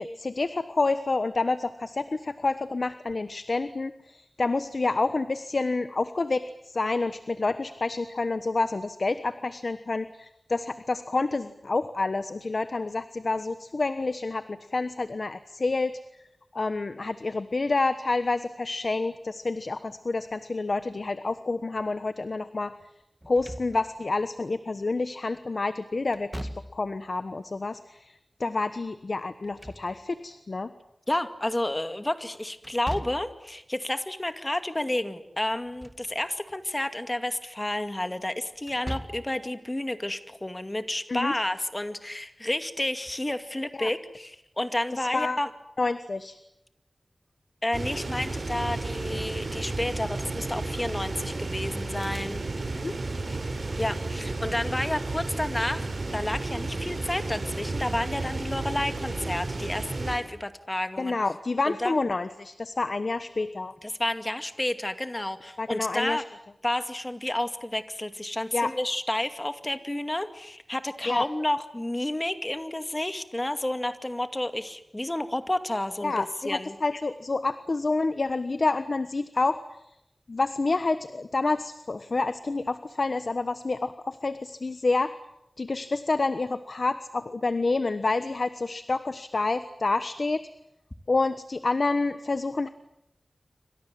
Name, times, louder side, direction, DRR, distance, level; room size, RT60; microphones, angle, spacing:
voice 1, 0.0-16.2 16.5-22.8 23.3-30.7 41.1-41.3 43.8-43.9 44.9-45.4 45.8-46.4 52.8-53.0 61.0-63.7 65.6-66.2 68.5-68.7 71.1-71.2 76.0-80.0 80.3-85.2 85.6-90.4 91.1-92.7, left 3 dB, 60° left, 11 dB, 1.2 m, -28 dB
Slam / Thump thud, 23.2-24.1 26.1-27.0 29.3-30.3 32.6-33.4 35.5-36.1 36.5-36.6 38.6-39.4, equal, 10° right, 2.2 m, -39 dB
voice 2, 31.1-45.5 47.6-52.4 53.8-55.9 56.1-61.2 61.7-61.9 63.8-66.2 66.6-76.8, left 1 dB, 25° left, 9 dB, 2.3 m, -30 dB
sound 1, 47.7-60.2, right 2 dB, 65° right, 5.5 m, -32 dB
28.5 x 25.5 x 7.7 m, 0.84 s
wide cardioid pair, 65°, 0 cm